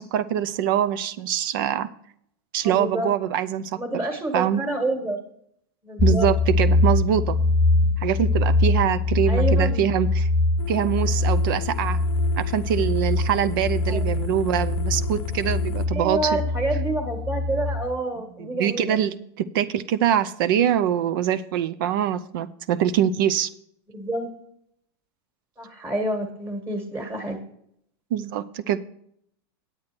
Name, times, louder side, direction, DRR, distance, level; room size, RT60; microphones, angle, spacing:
voice 1, 0.0-1.9 2.5-3.8 4.3-4.6 6.0-7.4 8.0-10.3 10.7-12.0 12.4-16.4 18.4-23.5 28.1-28.8, right 10 dB, 55° right, 13 dB, 0.6 m, -24 dB
voice 2, 2.6-3.1 3.8-5.2 5.8-6.3 9.3-9.8 13.9-14.1 15.9-19.1 23.9-24.3 25.6-27.4, right 1 dB, 15° right, 3 dB, 1.6 m, -28 dB
sound 1, 6.0-17.9, left 2 dB, 10° left, 0.4 m, -23 dB
sound 2, 10.6-15.9, left 9 dB, 55° left, 0.7 m, -35 dB
9.3 x 8.8 x 4.4 m, 0.69 s
supercardioid pair, 170°, 13 cm